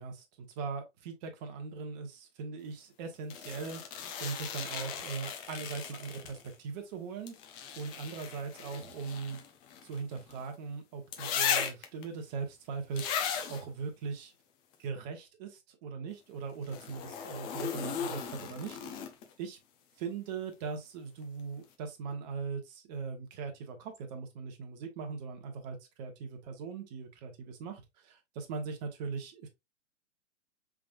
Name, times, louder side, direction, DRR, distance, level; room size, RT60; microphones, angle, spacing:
voice 1, 0.0-3.8 4.2-7.3 7.8-9.4 9.8-14.3 14.8-18.8 19.4-19.6 20.0-29.5, right 5 dB, 35° right, 1.2 m, -40 dB
sound 1, 3.3-6.5 7.3-10.4 11.1-12.0 13.0-13.6 16.6-19.3 21.2-21.3, left 8 dB, 20° left, 0.7 m, -37 dB
4.8 x 3.7 x 2.4 m
figure-of-eight pair, 120°, 38 cm